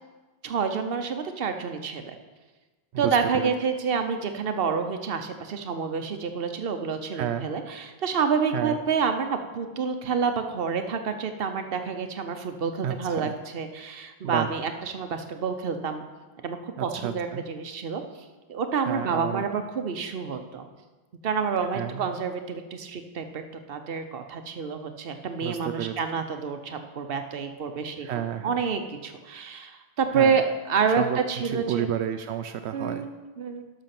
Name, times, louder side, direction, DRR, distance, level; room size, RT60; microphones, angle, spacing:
voice 1, 0.4-2.2 3.0-16.0 16.4-18.0 18.5-20.7 21.2-23.4 23.7-28.1 28.4-31.9 32.7-33.1 33.4-33.7, right 6 dB, 60° right, 7 dB, 1.1 m, -28 dB
voice 2, 2.9-3.5 7.1-7.5 8.5-8.8 12.8-13.3 14.2-14.5 16.8-17.4 18.9-19.5 21.7-22.1 25.4-26.3 28.0-28.6 30.1-30.3 31.0-31.2 31.4-33.1, right 9 dB, 85° right, 9 dB, 0.8 m, -31 dB
12.0 x 6.2 x 6.0 m, 1.2 s
omnidirectional pair, 1.1 m